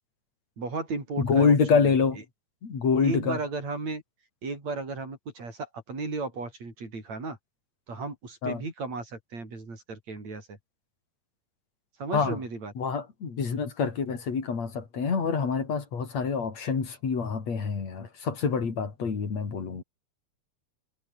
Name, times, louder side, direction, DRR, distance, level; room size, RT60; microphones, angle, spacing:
voice 1, 0.6-1.5 3.0-4.0 4.4-7.4 7.9-10.6 12.0-12.7, right 3 dB, 55° right, 8.9 m, -34 dB
voice 2, 1.2-2.2 2.6-3.4 8.4-8.6 12.1-12.4 12.8-19.8, left 5 dB, 55° left, 5.1 m, -26 dB
omnidirectional pair, 3.7 m